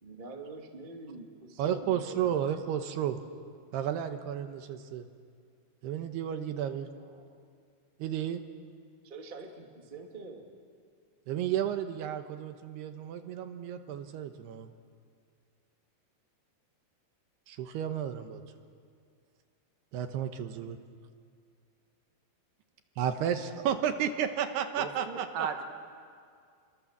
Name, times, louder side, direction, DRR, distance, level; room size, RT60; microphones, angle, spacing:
voice 1, 0.0-2.6 7.0-7.4 9.0-10.5, right 3 dB, 20° right, 2 dB, 1.3 m, -46 dB
voice 2, 1.6-3.2 3.7-5.1 5.8-6.9 8.0-8.4 11.3-14.7 17.5-18.4 19.9-20.8 23.0-25.5, right 9 dB, 75° right, 7 dB, 3.0 m, -32 dB
voice 3, 24.8-25.6, right 6 dB, 60° right, 5 dB, 2.9 m, -35 dB
29.5 x 23.0 x 7.4 m, 2.2 s
omnidirectional pair, 4.9 m